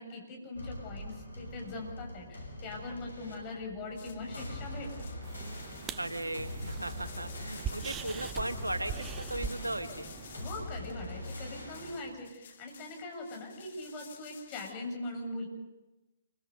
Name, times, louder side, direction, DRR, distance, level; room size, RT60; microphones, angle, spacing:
voice 1, 0.0-5.1 10.4-15.5, left 2 dB, 30° left, 1 dB, 7.4 m, -41 dB
sound 1, 0.5-12.0, left 1 dB, 80° left, 6.9 m, -43 dB
sound 2, 3.9-14.7, left 7 dB, 55° left, 2.2 m, -53 dB
sound 3, 5.2-10.5, right 7 dB, 20° right, 0.8 m, -42 dB
voice 2, 6.0-10.1, right 1 dB, 90° right, 8 dB, 1.9 m, -37 dB
28.5 x 24.0 x 5.5 m, 1.1 s
figure-of-eight pair, 130°, 0 cm